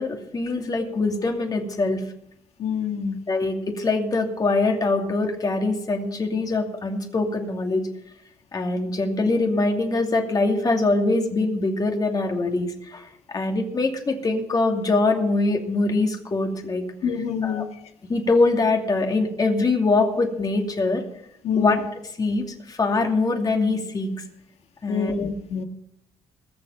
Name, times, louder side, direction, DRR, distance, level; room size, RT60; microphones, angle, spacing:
voice 1, 0.0-2.0 3.3-7.8 8.5-16.8 17.4-17.6 18.1-21.0 21.5-21.8 22.2-24.1 24.8-25.2, left 3 dB, 35° left, 3 dB, 2.6 m, -23 dB
voice 2, 2.6-3.2 17.0-17.7 21.4-21.8 24.9-25.6, left 7 dB, 70° left, 6 dB, 1.7 m, -26 dB
20.5 x 6.9 x 5.6 m, 0.76 s
cardioid pair, 85°, 11 cm